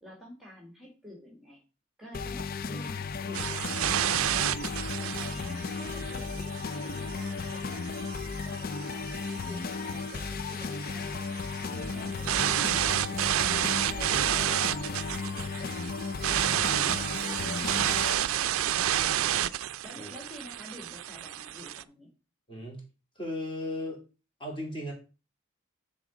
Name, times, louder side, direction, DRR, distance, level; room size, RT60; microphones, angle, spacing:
voice 1, 0.0-1.6 2.0-4.2 4.6-8.0 8.4-9.1 9.4-11.3 11.7-16.2 16.6-19.6 19.8-22.1, equal, ahead, -2 dB, 1.7 m, -49 dB
sound 1, 2.1-18.1, left 4 dB, 45° left, 0.4 m, -35 dB
sound 2, 3.3-21.8, right 11 dB, 80° right, 0.4 m, -31 dB
voice 2, 22.5-22.8 23.2-24.0 24.4-24.9, left 1 dB, 25° left, 0 dB, 2.7 m, -36 dB
9.9 x 3.9 x 4.9 m, 0.32 s
head